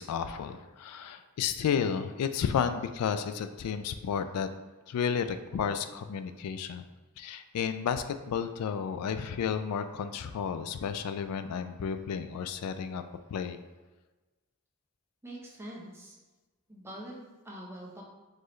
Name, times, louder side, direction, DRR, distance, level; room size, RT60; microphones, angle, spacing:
voice 1, 0.0-4.5 4.9-6.8 7.2-13.0 13.3-13.6, left 7 dB, 85° left, 11 dB, 0.3 m, -32 dB
voice 2, 15.2-16.1 16.7-18.0, right 1 dB, 10° right, -4 dB, 0.8 m, -44 dB
4.4 x 3.1 x 3.1 m, 1.2 s
head